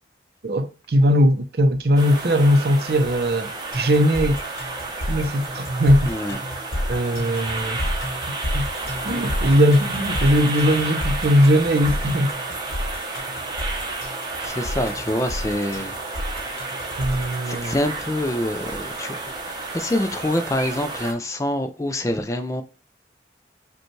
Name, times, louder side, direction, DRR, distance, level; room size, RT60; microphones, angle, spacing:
voice 1, 0.4-4.4 5.1-6.1 6.9-7.8 8.5-8.7 9.0-12.3 17.0-17.7, equal, 60° right, 0.5 m, -19 dB
sound 1, 2.0-21.1, right 3 dB, 25° right, 0.7 m, -31 dB
sound 2, 3.7-17.3, left 1 dB, 65° left, 1.1 m, -30 dB
voice 2, 6.1-6.4 14.4-15.9 17.4-22.6, left 1 dB, 20° left, 0.3 m, -26 dB
5.2 x 2.3 x 3.0 m
head